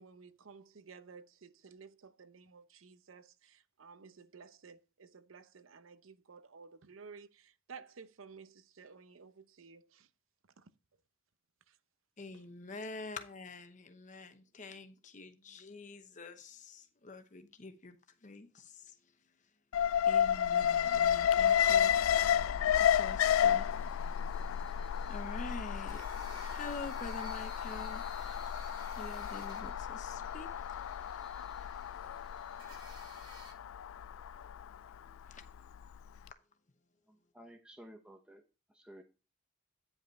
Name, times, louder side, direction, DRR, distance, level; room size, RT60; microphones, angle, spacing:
voice 1, 0.0-3.2 3.8-7.3 7.7-8.5 8.8-9.3 9.6-9.8, right 5 dB, 85° right, 0.7 m, -53 dB
voice 2, 12.2-18.0 18.2-18.9 20.1-22.0 22.8-23.7 25.1-28.0 28.5-28.6 28.9-30.5 35.3-35.4, left 3 dB, 40° left, 0.9 m, -46 dB
Alarm, 19.7-35.8 36.2-36.3, left 9 dB, 85° left, 0.3 m, -31 dB
sound 1, 22.6-33.5, right 3 dB, 25° right, 2.0 m, -57 dB
voice 3, 37.1-38.4 38.7-39.0, equal, 5° right, 0.8 m, -54 dB
9.5 x 5.4 x 4.0 m
head